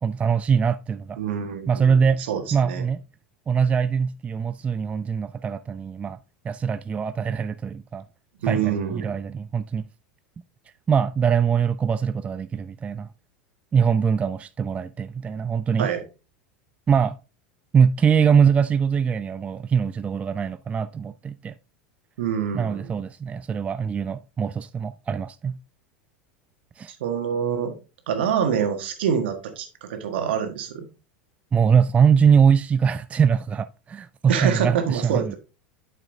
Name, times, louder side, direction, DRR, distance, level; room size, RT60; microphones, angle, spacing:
voice 1, 0.0-1.2 1.7-2.2 2.5-3.0 3.5-6.2 6.4-8.0 8.5-9.8 10.9-13.1 13.7-15.9 16.9-17.2 17.7-21.5 22.5-25.6 26.8-26.9 31.5-35.3, right 7 dB, 20° right, 0.3 m, -22 dB
voice 2, 1.2-2.0 2.3-2.8 8.4-9.1 15.8-16.0 22.2-23.0 26.9-27.8 28.1-30.9 34.3-35.4, right 8 dB, 70° right, 1.6 m, -26 dB
8.6 x 6.4 x 2.7 m
hypercardioid pair, 85°, 6 cm